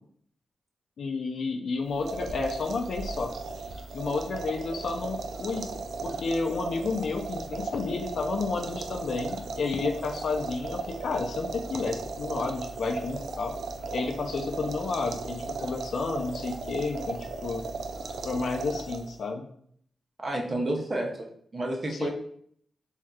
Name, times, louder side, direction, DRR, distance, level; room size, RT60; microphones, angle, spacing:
voice 1, 1.0-3.6 3.9-5.6 6.0-13.6 13.9-17.7 18.2-19.5 21.9-22.1, left 4 dB, 70° left, 4 dB, 0.4 m, -31 dB
sound 1, 1.9-19.3, right 3 dB, 80° right, 0.3 m, -36 dB
voice 2, 20.2-22.1, right 1 dB, 40° right, 1 dB, 0.7 m, -30 dB
3.3 x 2.7 x 2.3 m, 0.64 s
cardioid pair, 70°, 0 cm